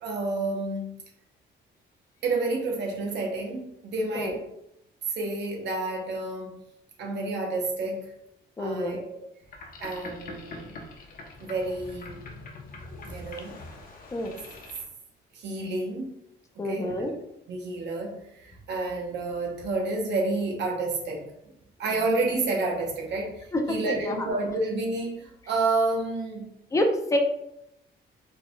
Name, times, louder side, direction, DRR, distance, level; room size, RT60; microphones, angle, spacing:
voice 1, 0.0-0.9 2.2-4.4 5.1-6.6 7.0-8.1 8.6-9.2 9.8-10.7 11.4-12.2 13.0-13.6 15.3-16.1 16.6-17.1 17.5-21.3 21.8-26.5, right 2 dB, 70° right, 0 dB, 0.8 m, -30 dB
voice 2, 8.6-9.0 14.1-14.4 16.6-17.1 23.5-24.2 26.7-27.2, left 1 dB, 15° left, 3 dB, 0.6 m, -27 dB
Boat Water vehicle, 9.4-14.8, left 2 dB, 50° left, 0.8 m, -43 dB
4.4 x 3.4 x 2.2 m, 0.80 s
cardioid pair, 130°, 19 cm